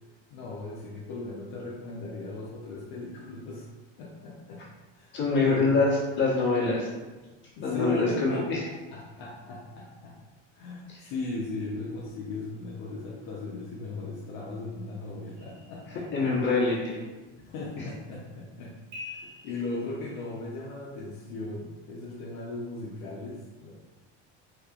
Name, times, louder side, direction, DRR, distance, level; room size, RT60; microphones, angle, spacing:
voice 1, 0.3-3.7 4.0-4.6 4.9-5.7 7.6-8.4 8.9-10.1 10.5-16.3 17.4-18.7 19.0-23.7, left 2 dB, 65° left, -5 dB, 0.7 m, -38 dB
voice 2, 5.1-5.9 6.2-6.9 7.6-8.6 16.1-17.0, left 3 dB, 40° left, -6 dB, 1.1 m, -24 dB
sound 1, 15.4-16.6 18.9-20.4, left 3 dB, 40° right, 1.3 m, -46 dB
3.1 x 2.9 x 2.4 m, 1.2 s
cardioid pair, 135°, 30 cm